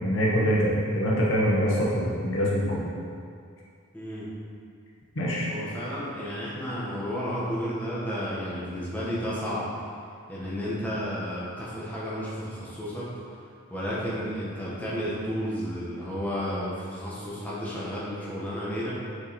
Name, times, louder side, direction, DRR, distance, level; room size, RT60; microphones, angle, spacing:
voice 1, 0.0-2.9 5.2-5.5, equal, 65° left, -5 dB, 1.0 m, -24 dB
voice 2, 3.9-4.2 5.4-9.7 10.3-13.1 13.7-18.9, equal, 10° left, -9 dB, 1.4 m, -32 dB
6.4 x 5.4 x 4.3 m, 2.3 s
head